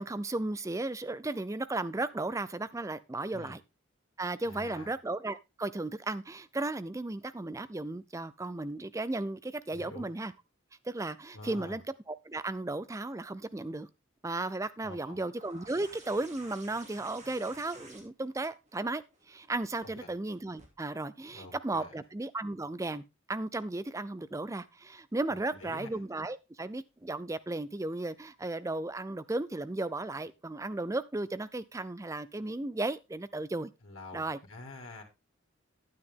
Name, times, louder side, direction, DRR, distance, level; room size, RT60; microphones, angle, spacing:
voice 1, 0.0-3.6 4.2-10.3 10.8-11.8 12.1-13.9 14.2-33.7 34.1-34.4, right 2 dB, 15° right, 0.4 m, -35 dB
voice 2, 4.4-4.9 9.7-10.1 11.3-11.8 14.8-15.2 20.0-20.1 21.3-22.0 25.6-25.9 33.8-35.0, left 2 dB, 85° left, 2.5 m, -47 dB
sound 1, 15.4-20.7 22.0-22.1, right 2 dB, 35° right, 2.7 m, -53 dB
9.6 x 9.4 x 3.6 m
head